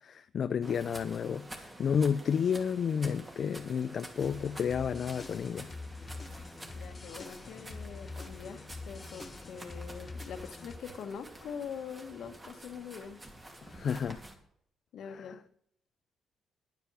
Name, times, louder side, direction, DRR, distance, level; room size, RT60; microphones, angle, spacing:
voice 1, 0.0-5.7 13.6-14.2 15.1-15.4, left 7 dB, 55° left, 10 dB, 0.4 m, -31 dB
sound 1, 0.6-14.4, right 1 dB, 20° right, 2.7 m, -49 dB
sound 2, 4.2-10.8, left 3 dB, 30° left, 0.9 m, -45 dB
voice 2, 6.7-13.2 14.9-15.4, left 7 dB, 70° left, 8 dB, 1.4 m, -43 dB
10.5 x 9.5 x 6.7 m, 0.70 s
cardioid pair, 90°, 0 cm